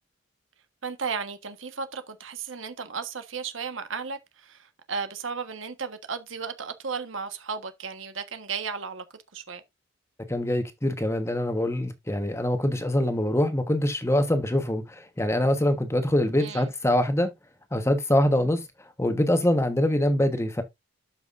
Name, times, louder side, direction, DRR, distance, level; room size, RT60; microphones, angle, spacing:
voice 1, 0.8-9.0 9.3-9.6 16.4-16.7, right 5 dB, 90° right, 1.4 m, -34 dB
voice 2, 10.3-17.3 17.7-18.6 19.0-20.6, left 1 dB, 15° left, 1.2 m, -24 dB
12.5 x 5.9 x 2.5 m
head